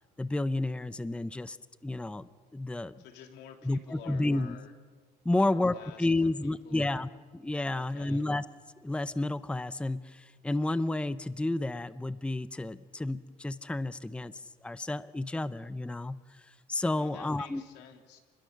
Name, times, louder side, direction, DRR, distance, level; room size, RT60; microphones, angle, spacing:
voice 1, 0.2-1.6 1.8-2.9 3.6-4.6 5.2-8.4 8.8-17.6, left 2 dB, 5° left, 14 dB, 0.7 m, -31 dB
voice 2, 3.0-4.7 5.3-7.1 7.7-8.2 17.0-18.2, left 8 dB, 85° left, 4 dB, 3.1 m, -50 dB
29.5 x 21.0 x 6.6 m, 1.5 s
cardioid pair, 110°, 17 cm